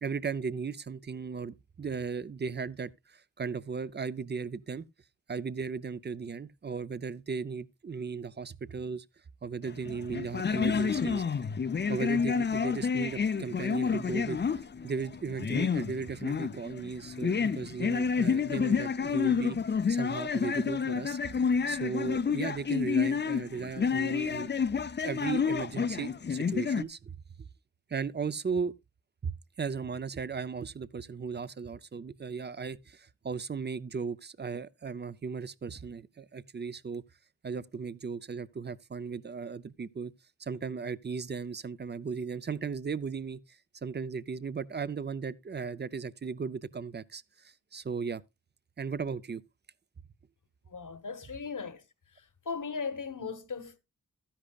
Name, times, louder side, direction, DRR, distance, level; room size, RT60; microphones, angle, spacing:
voice 1, 0.0-4.9 5.3-9.1 9.4-11.4 11.9-24.5 25.0-27.5 27.9-28.7 29.2-37.0 37.4-40.1 40.4-48.2 48.8-49.4, right 5 dB, 30° right, 0.5 m, -36 dB
sound 1, 9.6-26.8, left 6 dB, 30° left, 0.5 m, -29 dB
voice 2, 50.7-51.8 52.1-53.8, left 5 dB, 60° left, 1.2 m, -38 dB
13.0 x 10.0 x 2.3 m
wide cardioid pair, 80°, 35 cm